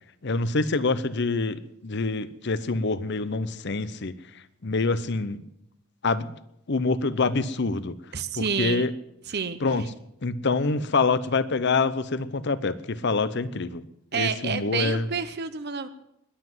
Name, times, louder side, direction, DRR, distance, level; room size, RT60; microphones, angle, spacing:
voice 1, 0.2-4.1 4.6-5.4 6.0-6.3 6.7-7.9 8.3-8.9 9.6-9.9 10.2-13.8 14.1-15.1, left 3 dB, 55° left, 15 dB, 0.8 m, -26 dB
voice 2, 8.1-8.9 9.3-9.9 14.1-15.9, right 6 dB, 50° right, 11 dB, 0.8 m, -29 dB
20.5 x 7.7 x 7.7 m, 0.77 s
head